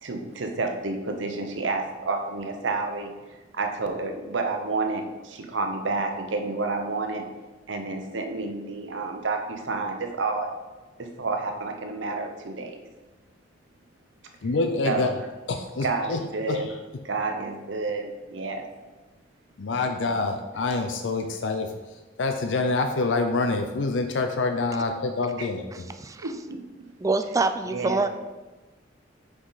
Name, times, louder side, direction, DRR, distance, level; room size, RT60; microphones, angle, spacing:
voice 1, 0.0-3.1 3.5-7.3 7.7-10.5 11.0-12.8 14.8-15.1 15.8-16.7 17.0-18.7 20.1-20.2 20.5-20.6 25.4-25.5 26.2-26.6 27.7-28.0, right 3 dB, 90° right, 4 dB, 0.9 m, -30 dB
voice 2, 14.4-15.1 15.5-16.2 16.5-16.6 19.6-21.7 22.2-25.8, left 3 dB, 75° left, 5 dB, 0.5 m, -26 dB
voice 3, 26.0-26.3 27.0-28.1, right 3 dB, 20° right, 9 dB, 0.4 m, -25 dB
6.2 x 5.0 x 4.0 m, 1.2 s
head